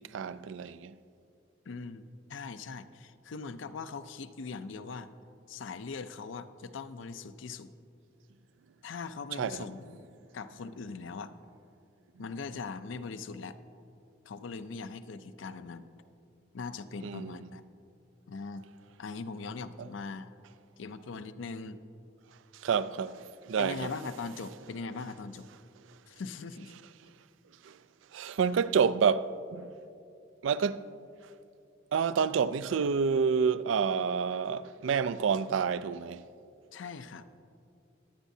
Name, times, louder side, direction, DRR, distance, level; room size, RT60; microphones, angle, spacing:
voice 1, 0.1-1.0 9.4-9.7 17.0-17.4 19.8-19.9 22.6-23.9 27.6-27.8 28.1-29.7 30.4-30.9 31.9-36.3, right 6 dB, 85° right, 0.4 m, -29 dB
voice 2, 1.7-5.1 5.5-7.7 8.8-10.0 10.3-11.3 12.2-13.6 14.3-15.9 16.5-17.6 18.3-18.7 19.0-20.3 20.8-21.8 23.6-25.5 26.1-26.7 36.7-37.2, left 4 dB, 85° left, 0.5 m, -40 dB
22.0 x 9.1 x 2.7 m
head